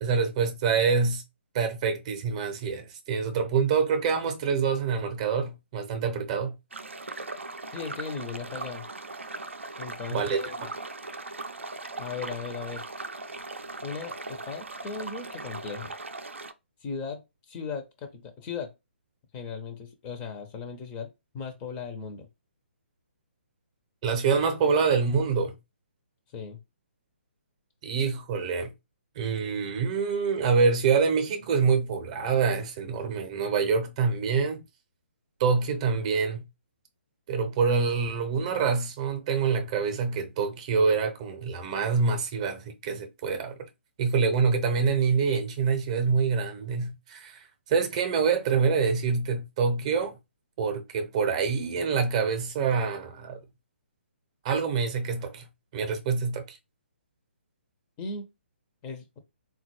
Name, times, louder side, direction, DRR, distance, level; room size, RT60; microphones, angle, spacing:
voice 1, 0.0-1.2 1.5-6.5 10.1-10.7 24.0-25.5 27.8-28.7 29.2-34.6 35.4-36.4 37.3-43.6 44.0-50.1 50.6-53.4 54.4-55.5 55.7-56.6, right 5 dB, 30° right, 0.7 m, -26 dB
sound 1, 6.7-16.5, right 2 dB, 75° right, 0.5 m, -39 dB
voice 2, 7.7-8.9 9.8-10.7 12.0-12.8 13.8-15.9 16.8-17.2 17.5-18.7 19.3-21.1 21.3-22.3 26.3-26.6 58.0-58.3 58.8-59.2, left 5 dB, 20° left, 0.5 m, -37 dB
3.7 x 2.2 x 2.9 m
figure-of-eight pair, 135°, 7 cm